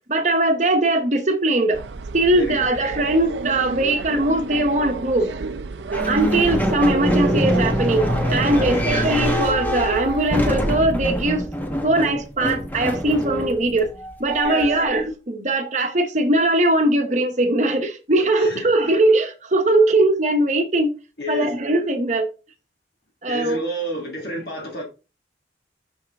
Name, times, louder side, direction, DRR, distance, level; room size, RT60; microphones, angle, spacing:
voice 1, 0.1-1.8 2.1-5.4 6.1-11.5 11.8-13.9 14.2-21.0 21.3-22.3 23.2-23.6, right 2 dB, 40° right, 1.0 m, -20 dB
sound 1, 1.7-10.4, right 4 dB, 85° right, 0.5 m, -31 dB
voice 2, 2.4-2.7 3.8-4.0 8.6-9.2 14.4-14.7 18.4-18.9 21.2-21.5 23.3-24.8, equal, 65° left, 1.7 m, -30 dB
sound 2, 5.9-15.0, equal, 10° left, 0.9 m, -24 dB
6.3 x 5.6 x 3.5 m
head